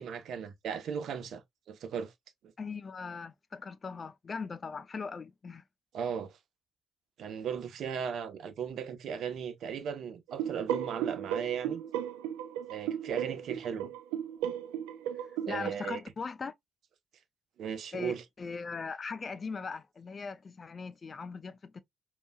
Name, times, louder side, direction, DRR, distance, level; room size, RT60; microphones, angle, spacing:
voice 1, 0.0-1.4 1.7-2.1 5.9-6.4 7.2-11.8 12.7-13.9 15.5-16.0 17.6-18.2, right 7 dB, 60° right, 0.9 m, -36 dB
voice 2, 2.6-5.6 15.5-16.5 17.9-21.8, left 5 dB, 35° left, 0.5 m, -39 dB
sound 1, 10.3-15.7, right 10 dB, 75° right, 0.6 m, -35 dB
5.2 x 3.0 x 2.3 m
hypercardioid pair, 50°, 0 cm